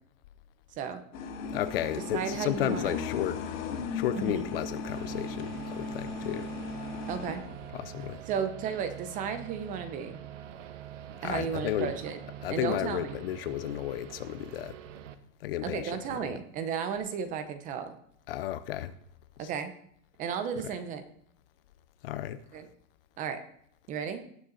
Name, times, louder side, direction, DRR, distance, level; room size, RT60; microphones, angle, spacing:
sound 1, 1.1-7.7, left 4 dB, 75° left, 2.7 m, -37 dB
voice 1, 1.5-3.4 3.9-6.5 7.7-8.2 11.2-11.9 12.4-14.8 15.4-15.9 18.3-18.9 22.0-22.4, left 12 dB, 45° left, 0.7 m, -33 dB
voice 2, 2.1-3.0 4.1-4.5 7.1-7.4 8.3-10.2 11.2-12.2 12.5-13.2 15.6-18.0 19.4-19.7 20.2-21.0 22.5-22.7 23.2-23.4 23.9-24.2, right 7 dB, 20° right, 0.8 m, -34 dB
sound 2, 4.8-15.2, right 10 dB, 65° right, 1.3 m, -45 dB
18.0 x 6.9 x 4.0 m
supercardioid pair, 160°, 40 cm